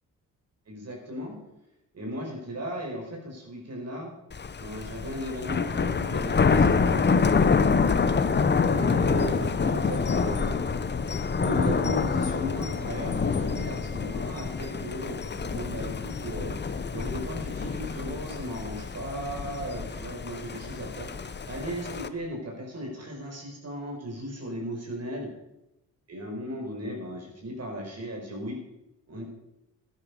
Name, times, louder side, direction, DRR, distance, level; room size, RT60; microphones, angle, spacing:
voice 1, 0.7-1.3 1.9-4.1 4.6-7.1 8.7-10.6 11.3-25.3 26.1-28.6 29.1-29.2, equal, 45° right, 1 dB, 5.0 m, -36 dB
Thunder, 4.3-22.1, left 5 dB, 30° left, 1.0 m, -27 dB
13.5 x 10.5 x 5.5 m, 0.90 s
cardioid pair, 80°, 34 cm